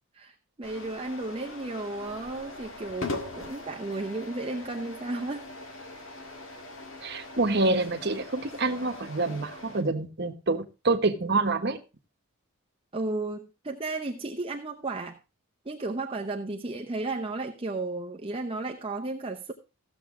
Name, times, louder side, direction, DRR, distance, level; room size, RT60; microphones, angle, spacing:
voice 1, 0.2-5.5 12.9-15.2 15.6-19.5, right 2 dB, 25° right, 0.8 m, -34 dB
sound 1, 0.6-9.8, left 2 dB, 60° left, 1.8 m, -41 dB
voice 2, 7.0-11.8, right 3 dB, 50° right, 1.2 m, -27 dB
15.0 x 7.2 x 3.6 m
head